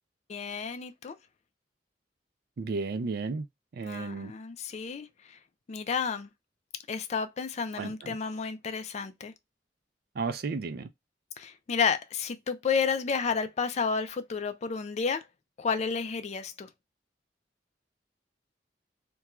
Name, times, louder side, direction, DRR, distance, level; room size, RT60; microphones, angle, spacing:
voice 1, 0.3-1.1 3.8-5.4 5.7-6.3 6.9-9.3 11.4-15.2 15.6-16.7, left 5 dB, 40° left, 0.4 m, -31 dB
voice 2, 2.6-3.5 3.7-4.3 7.8-8.2 10.2-10.9, right 4 dB, 60° right, 0.4 m, -33 dB
2.4 x 2.2 x 2.9 m
head